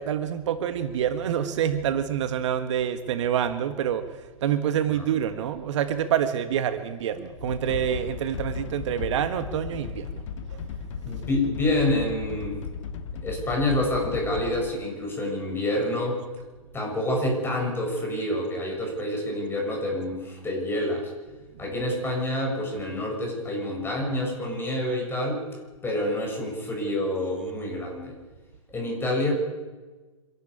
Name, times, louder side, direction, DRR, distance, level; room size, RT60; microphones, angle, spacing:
voice 1, 0.0-10.2 10.5-10.6, right 9 dB, 60° right, 10 dB, 1.5 m, -27 dB
sound 1, 7.4-14.7, left 6 dB, 60° left, 1.8 m, -36 dB
voice 2, 11.0-12.6 13.2-16.2 16.7-21.1 21.6-25.4 25.8-28.2 28.7-29.3, left 1 dB, 15° left, 1 dB, 7.3 m, -27 dB
26.0 x 12.0 x 8.7 m, 1.3 s
hypercardioid pair, 115°, 18 cm